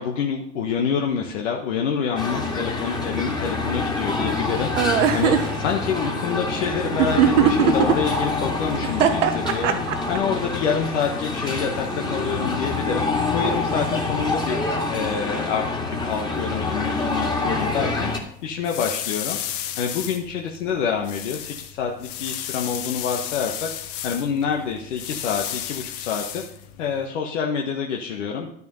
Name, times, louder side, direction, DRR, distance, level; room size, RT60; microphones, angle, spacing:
voice 1, 0.0-13.1 13.3-14.6 14.9-15.7 16.0-19.4 19.8-23.7 24.0-26.4 26.8-28.5, left 6 dB, 80° left, 1 dB, 1.4 m, -27 dB
sound 1, 2.2-18.2, left 3 dB, 10° left, 2.1 m, -26 dB
sound 2, 4.8-5.5 7.0-7.9 8.8-10.2, right 9 dB, 85° right, 1.1 m, -18 dB
sound 3, 17.9-27.1, left 11 dB, 60° left, 1.2 m, -34 dB
11.0 x 6.9 x 5.5 m, 0.69 s
hypercardioid pair, 85°, 36 cm